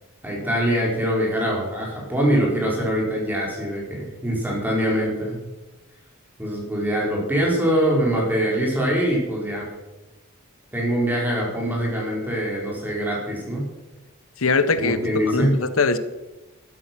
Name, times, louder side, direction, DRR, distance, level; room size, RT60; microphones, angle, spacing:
voice 1, 0.2-5.4 6.4-9.7 10.7-13.6 14.8-15.6, equal, 10° right, -3 dB, 4.6 m, -23 dB
voice 2, 14.4-15.0 15.3-16.0, left 4 dB, 70° left, 12 dB, 1.2 m, -21 dB
14.5 x 13.0 x 6.1 m, 1.0 s
head